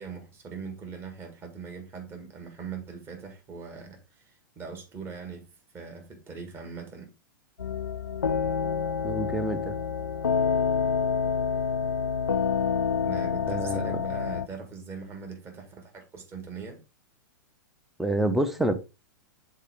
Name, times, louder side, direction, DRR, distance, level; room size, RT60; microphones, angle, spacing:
voice 1, 0.0-5.5 5.7-7.1 13.0-16.8, right 5 dB, 20° right, 1.8 m, -41 dB
sound 1, 7.6-14.5, left 6 dB, 75° left, 0.4 m, -27 dB
voice 2, 9.0-9.7 13.5-14.0 18.0-18.7, right 1 dB, ahead, 0.7 m, -27 dB
6.6 x 4.3 x 3.6 m
figure-of-eight pair, 100°, 11 cm